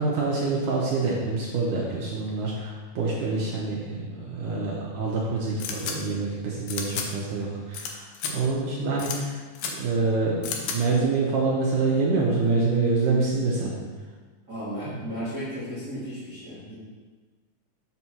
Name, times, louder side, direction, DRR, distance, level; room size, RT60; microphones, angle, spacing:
voice 1, 0.0-9.4 9.6-13.7 14.9-15.0, right 3 dB, 75° right, -4 dB, 1.9 m, -26 dB
sound 1, 5.6-5.9 6.7-7.1 7.7-7.9 8.1-8.3 9.0-9.2 9.5-9.7 10.4-10.8, left 7 dB, 75° left, 2.4 m, -31 dB
voice 2, 14.5-16.7, equal, 40° right, -11 dB, 1.2 m, -34 dB
7.2 x 4.2 x 6.0 m, 1.4 s
omnidirectional pair, 4.7 m